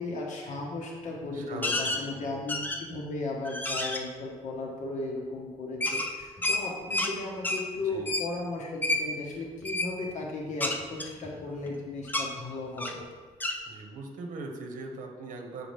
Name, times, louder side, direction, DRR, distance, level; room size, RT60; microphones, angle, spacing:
voice 1, 0.0-13.0, left 2 dB, 65° left, -2 dB, 1.3 m, -36 dB
voice 2, 1.3-2.7 7.7-8.1 13.6-15.7, right 3 dB, 85° right, 3 dB, 0.9 m, -41 dB
sound 1, 1.6-2.0 2.5-3.0 3.4-4.0 5.8-7.1 7.4-7.6 8.1-8.3 8.8-9.0 9.6-9.9 10.6-11.7 12.1-12.3 12.8-13.0 13.4-13.6, left 2 dB, 15° left, 0.5 m, -30 dB
7.7 x 4.8 x 3.4 m, 1.4 s
cardioid pair, 130°, 13 cm